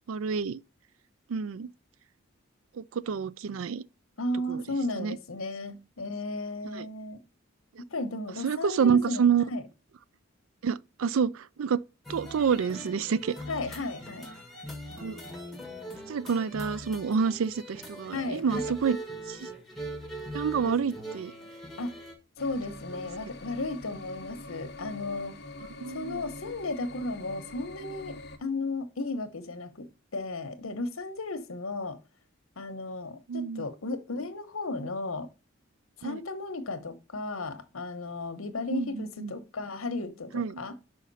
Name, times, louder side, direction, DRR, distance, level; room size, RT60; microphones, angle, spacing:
voice 1, 0.1-0.6 1.3-1.7 2.7-3.8 4.5-4.6 5.0-5.2 6.7-6.9 8.4-9.5 10.6-11.8 12.1-13.3 15.0-15.2 16.1-19.0 19.3-19.5 20.3-21.3 25.8-26.2 33.3-33.7 36.0-36.2 38.7-39.3 40.3-40.8, right 6 dB, 80° right, 0.4 m, -28 dB
voice 2, 4.2-7.2 7.9-9.6 13.5-14.3 18.1-18.6 21.8-21.9 22.4-25.4 25.9-29.9 30.1-32.0 32.6-35.3 36.0-40.8, left 2 dB, 85° left, 1.0 m, -34 dB
sound 1, 12.1-22.1, right 1 dB, ahead, 1.4 m, -41 dB
sound 2, 22.4-28.4, left 2 dB, 50° left, 1.0 m, -44 dB
5.7 x 5.0 x 4.0 m
head